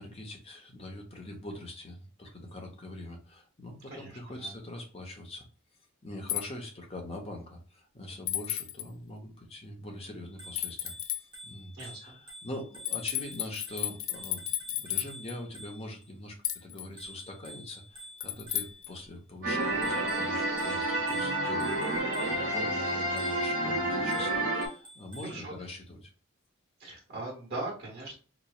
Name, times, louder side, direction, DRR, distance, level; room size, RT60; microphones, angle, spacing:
voice 1, 0.0-5.5 6.0-26.1, left 1 dB, 30° left, 2 dB, 0.9 m, -43 dB
voice 2, 3.9-4.5 11.7-12.2 25.3-25.5 26.8-28.1, right 2 dB, 50° right, -4 dB, 1.5 m, -40 dB
sound 1, 6.3-6.4 8.3-8.9 10.5-11.2 12.8-15.3 16.4-16.9 18.2-18.9, left 13 dB, 80° left, 0.5 m, -33 dB
Bicycle bell, 10.3-16.1 17.0-19.1 19.6-22.6 23.2-23.6 24.1-25.5, equal, 25° right, 1.3 m, -50 dB
sound 2, 19.4-24.7, right 1 dB, 85° right, 1.3 m, -29 dB
4.0 x 3.1 x 2.4 m, 0.38 s
head